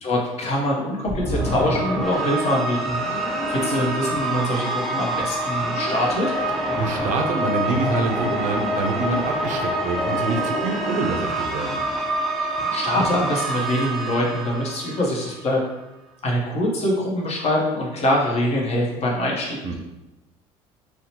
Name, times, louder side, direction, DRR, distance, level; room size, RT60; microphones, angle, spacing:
voice 1, 0.0-6.3 12.4-15.6 16.2-19.8, left 1 dB, 45° left, -2 dB, 0.8 m, -24 dB
sound 1, 1.1-15.4, right 1 dB, ahead, 0.5 m, -26 dB
voice 2, 6.8-11.8 19.6-19.8, right 3 dB, 60° right, 4 dB, 0.4 m, -26 dB
2.8 x 2.1 x 2.8 m, 1.0 s
supercardioid pair, 80°, 15 cm